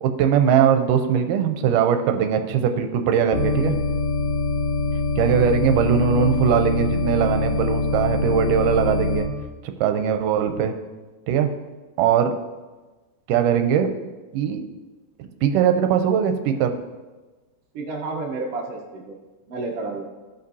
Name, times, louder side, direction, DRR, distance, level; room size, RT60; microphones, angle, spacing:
voice 1, 0.0-3.8 5.2-9.3 9.6-10.7 11.3-11.5 12.0-12.3 13.3-13.9 14.3-14.6 15.2-16.8, right 8 dB, 90° right, 7 dB, 2.2 m, -20 dB
sound 1, 3.3-9.2, left 3 dB, 75° left, 3.0 m, -24 dB
voice 2, 17.7-19.1 19.5-20.0, right 3 dB, 70° right, -1 dB, 1.5 m, -30 dB
14.5 x 5.2 x 2.7 m, 1.2 s
omnidirectional pair, 3.7 m